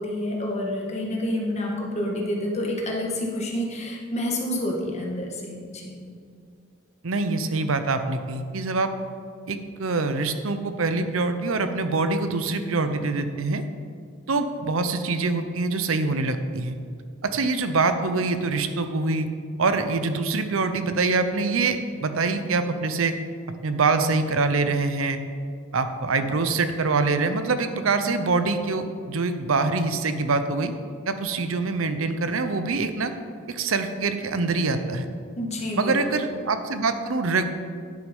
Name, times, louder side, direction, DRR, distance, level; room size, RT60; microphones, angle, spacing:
voice 1, 0.0-5.4 5.7-6.0 35.4-36.2, left 1 dB, 35° left, -1 dB, 1.7 m, -28 dB
voice 2, 7.0-8.9 9.5-13.6 14.3-16.8 17.2-19.3 19.6-23.2 23.6-25.2 25.7-30.7 31.1-33.1 33.5-35.1 35.8-37.4, right 3 dB, 80° right, 9 dB, 0.7 m, -24 dB
10.5 x 6.4 x 5.4 m, 2.2 s
head